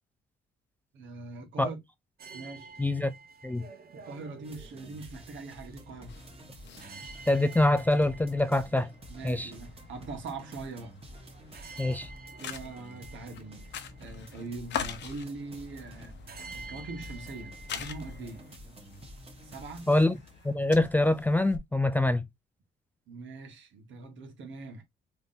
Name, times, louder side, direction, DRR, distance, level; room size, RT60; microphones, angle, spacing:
voice 1, 0.9-1.8 2.3-2.7 3.9-6.2 9.1-11.0 12.4-13.7 14.0-16.3 16.5-18.5 19.4-19.9 23.1-24.8, right 3 dB, 70° right, 1.5 m, -42 dB
sound 1, 2.2-18.6, right 4 dB, 50° right, 1.0 m, -51 dB
voice 2, 2.8-3.1 3.4-3.6 7.3-8.9 9.2-9.5 11.8-12.1 19.9-20.2 20.4-22.2, left 2 dB, 10° left, 0.3 m, -25 dB
sound 2, 4.4-20.5, right 1 dB, 30° right, 1.3 m, -49 dB
sound 3, 6.1-21.6, left 8 dB, 65° left, 0.7 m, -45 dB
3.8 x 3.4 x 2.6 m
cardioid pair, 90°, 20 cm